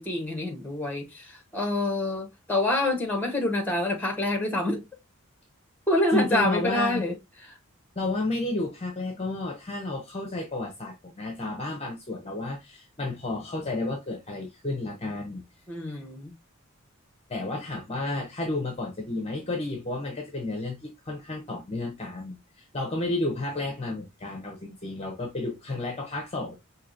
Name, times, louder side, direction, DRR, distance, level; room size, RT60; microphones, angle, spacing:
voice 1, 0.0-4.8 5.9-7.1 15.7-16.3, left 1 dB, 10° left, 1.0 m, -27 dB
voice 2, 6.1-7.0 8.0-15.4 17.3-26.5, left 2 dB, 30° left, 0.7 m, -31 dB
4.7 x 2.7 x 2.5 m
head